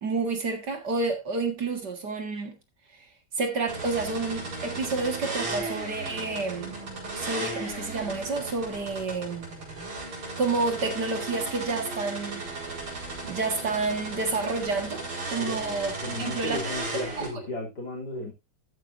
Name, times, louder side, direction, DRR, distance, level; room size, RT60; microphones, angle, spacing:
voice 1, 0.0-2.6 3.4-6.8 7.2-9.5 10.4-12.5 13.2-16.6 17.2-17.4, right 3 dB, 55° right, 2.3 m, -29 dB
sound 1, 3.7-17.3, right 2 dB, 80° right, 5.4 m, -35 dB
voice 2, 16.0-18.3, left 1 dB, 50° left, 3.9 m, -34 dB
13.0 x 9.2 x 2.7 m
omnidirectional pair, 2.3 m